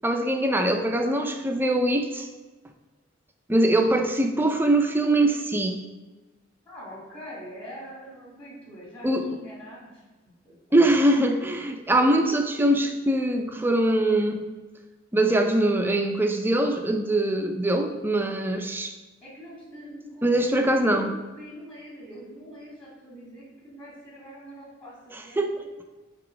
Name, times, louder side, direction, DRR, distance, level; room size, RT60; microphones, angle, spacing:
voice 1, 0.0-2.3 3.5-5.8 9.0-9.3 10.7-14.5 15.1-18.9 20.2-21.1 25.1-25.6, right 1 dB, 10° right, 4 dB, 0.5 m, -23 dB
voice 2, 6.7-10.0 10.4-10.8 19.2-25.7, equal, 25° left, -6 dB, 2.2 m, -44 dB
7.7 x 3.0 x 5.1 m, 1.2 s
head